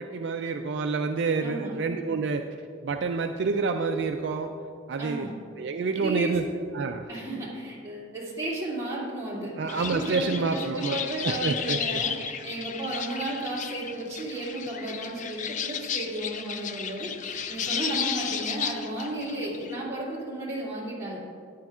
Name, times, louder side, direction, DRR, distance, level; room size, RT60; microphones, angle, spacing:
voice 1, 0.0-2.4 2.8-4.5 4.9-5.3 5.6-6.4 6.7-7.1 9.6-11.0 11.2-12.0, right 4 dB, 55° right, 6 dB, 0.3 m, -28 dB
voice 2, 1.4-1.7 5.0-5.3 6.0-6.4 7.1-21.2, right 2 dB, 15° right, -7 dB, 2.5 m, -34 dB
sound 1, 9.7-19.8, left 7 dB, 40° left, 0.4 m, -33 dB
13.5 x 9.8 x 2.4 m, 2.5 s
head